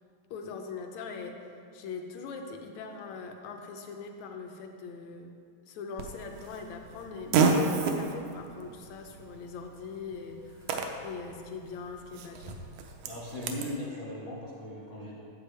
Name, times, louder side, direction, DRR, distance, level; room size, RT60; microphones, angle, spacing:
voice 1, 0.3-1.5 1.7-5.3 5.7-10.7 11.0-12.6, left 5 dB, 80° left, 4 dB, 1.9 m, -41 dB
Fart, 6.0-13.7, right 4 dB, 90° right, 2.1 m, -32 dB
voice 2, 13.0-15.2, left 1 dB, 50° left, -7 dB, 0.8 m, -38 dB
9.9 x 7.9 x 3.3 m, 2.3 s
omnidirectional pair, 3.3 m